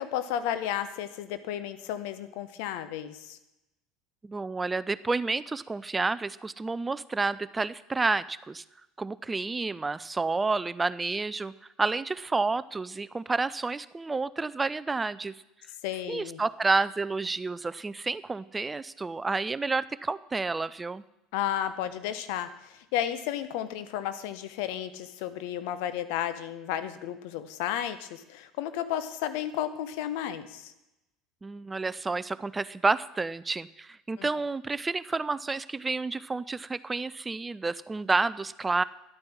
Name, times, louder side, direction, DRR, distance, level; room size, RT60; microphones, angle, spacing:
voice 1, 0.0-3.4 15.8-16.4 21.3-30.7 34.2-34.3, left 11 dB, 65° left, 12 dB, 0.9 m, -33 dB
voice 2, 4.2-8.6 9.0-11.5 11.8-15.4 16.1-21.0 31.4-38.8, right 3 dB, 20° right, 17 dB, 0.4 m, -30 dB
11.0 x 8.6 x 6.2 m, 0.91 s
hypercardioid pair, 75°, 0 cm